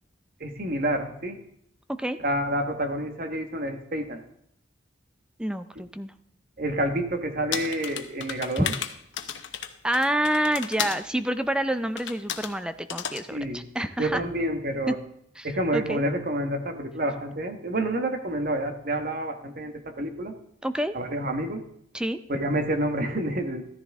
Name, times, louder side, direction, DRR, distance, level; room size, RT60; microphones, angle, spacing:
voice 1, 0.4-1.4 2.2-4.2 5.7-5.8 6.6-8.7 13.3-13.6 14.0-15.0 15.4-20.3 20.9-21.7 22.3-23.6, right 1 dB, 50° right, 5 dB, 1.5 m, -28 dB
voice 2, 5.4-6.1 8.6-8.7 9.8-14.2 14.9-15.0 15.4-16.0 20.6-20.9 21.9-22.2, right 1 dB, 5° right, 10 dB, 0.5 m, -28 dB
sound 1, 7.5-11.0 12.0-12.5 12.9-13.2, left 8 dB, 85° left, 1.0 m, -33 dB
14.5 x 14.0 x 3.6 m, 0.71 s
head